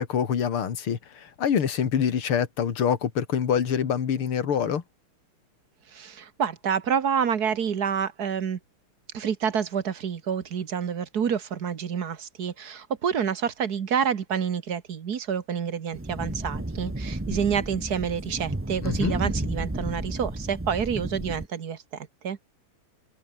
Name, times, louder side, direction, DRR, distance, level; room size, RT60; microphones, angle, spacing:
voice 1, 0.0-4.8 18.8-19.1, left 8 dB, 75° left, 2.9 m, -25 dB
voice 2, 5.9-8.6 9.1-22.4, right 7 dB, 50° right, 1.7 m, -28 dB
sound 1, 15.9-21.5, right 1 dB, 15° right, 0.4 m, -32 dB
omnidirectional pair, 2.4 m